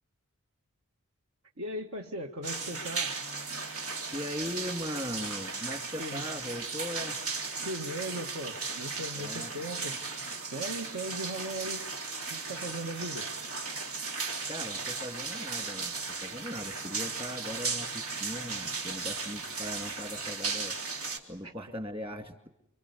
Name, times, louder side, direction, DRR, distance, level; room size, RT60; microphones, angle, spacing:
voice 1, 1.6-3.2 6.0-6.2 7.6-10.0 10.5-11.9 12.3-13.3 21.4-21.5, right 1 dB, 70° right, 2 dB, 1.9 m, -38 dB
sound 1, 2.4-21.2, right 4 dB, 90° right, 3.3 m, -36 dB
voice 2, 4.1-7.2 9.2-9.5 14.5-20.8 21.3-22.5, equal, 25° right, 7 dB, 2.4 m, -39 dB
29.5 x 24.0 x 8.3 m, 0.83 s
head